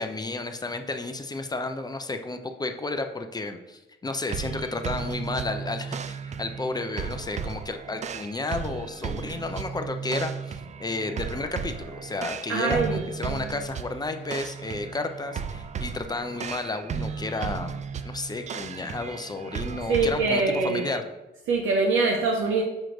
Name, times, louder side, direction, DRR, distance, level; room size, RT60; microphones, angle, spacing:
voice 1, 0.0-21.0, left 3 dB, 20° left, 6 dB, 0.5 m, -32 dB
sound 1, 4.3-21.0, right 6 dB, 35° right, 0.4 m, -35 dB
voice 2, 12.5-13.0 19.9-20.8 21.5-22.6, right 3 dB, 85° right, 1 dB, 0.7 m, -23 dB
6.4 x 3.1 x 5.1 m, 1.1 s
cardioid pair, 90°, 20 cm